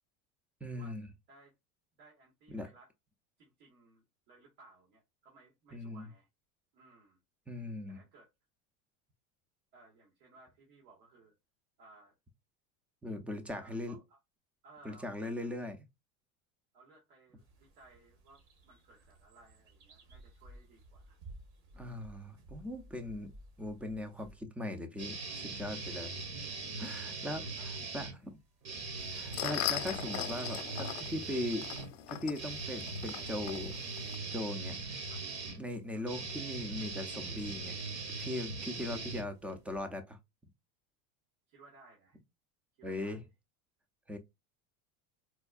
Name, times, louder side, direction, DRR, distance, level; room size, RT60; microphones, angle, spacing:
voice 1, 0.6-1.1 2.5-2.7 5.7-6.1 7.5-8.0 13.0-14.0 14.8-15.8 21.8-23.3 23.6-26.1 26.8-27.4 27.9-28.4 29.1-31.7 32.1-33.7 34.3-34.7 35.6-37.8 38.2-40.2 42.8-43.2 44.1-44.2, left 1 dB, 5° right, 0.4 m, -39 dB
voice 2, 2.0-2.9 3.4-6.3 6.7-7.2 7.9-8.3 9.7-11.3 11.8-12.1 13.5-14.2 14.6-15.5 16.7-21.2 21.7-22.0 26.0-26.2 27.0-27.7 35.1-35.3 35.9-36.1 38.8-39.0 41.5-42.2 42.8-43.2, right 3 dB, 75° right, 1.5 m, -60 dB
sound 1, 17.4-24.4, right 1 dB, 60° right, 1.5 m, -55 dB
sound 2, 25.0-28.1 28.6-39.8, right 3 dB, 40° right, 1.0 m, -41 dB
sound 3, 29.0-34.2, left 12 dB, 65° left, 0.7 m, -40 dB
4.3 x 2.3 x 2.3 m
supercardioid pair, 120°, 43 cm